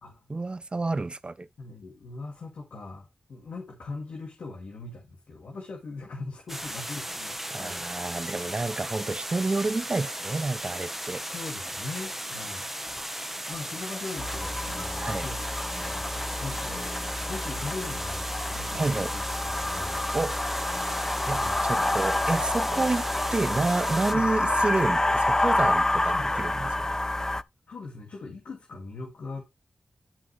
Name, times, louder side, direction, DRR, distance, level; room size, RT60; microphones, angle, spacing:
voice 1, 0.3-1.5 7.5-11.2 15.0-15.3 18.7-19.1 20.1-20.4 21.3-23.0 23.3-26.9, right 3 dB, 40° right, 0.6 m, -29 dB
voice 2, 1.6-7.9 11.2-12.7 13.1-20.1 21.3-21.6 24.1-24.3 26.1-26.3 27.7-29.4, left 3 dB, 85° left, 2.3 m, -40 dB
sound 1, 6.5-24.1, right 1 dB, 10° right, 1.2 m, -36 dB
sound 2, 14.2-27.4, left 2 dB, 20° left, 0.5 m, -28 dB
11.0 x 5.1 x 3.3 m
cardioid pair, 50°, 3 cm